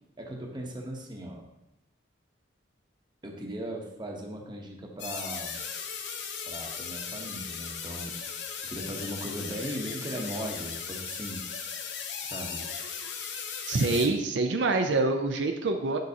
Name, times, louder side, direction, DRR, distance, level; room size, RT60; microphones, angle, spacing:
voice 1, 0.2-1.4 3.2-5.6 6.4-8.1 8.6-11.4 12.2-12.7, right 1 dB, 25° right, 1 dB, 0.9 m, -38 dB
sound 1, 5.0-14.1, left 6 dB, 65° left, 0.8 m, -37 dB
voice 2, 13.7-16.0, right 3 dB, 70° right, 4 dB, 0.5 m, -26 dB
7.4 x 6.5 x 2.8 m, 0.91 s
head